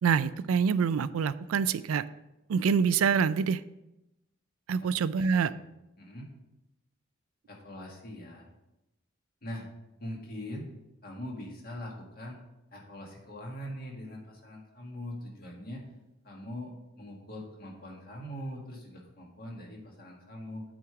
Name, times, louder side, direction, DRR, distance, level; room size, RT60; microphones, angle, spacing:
voice 1, 0.0-2.0 2.5-3.6 4.7-5.5, right 6 dB, 90° right, 16 dB, 0.3 m, -26 dB
voice 2, 4.8-5.6 6.0-6.3 7.5-8.5 9.4-9.7 10.0-10.7 11.0-12.4 12.7-15.8 16.2-20.6, left 1 dB, 45° left, -1 dB, 1.8 m, -42 dB
8.5 x 5.0 x 4.7 m, 0.93 s
head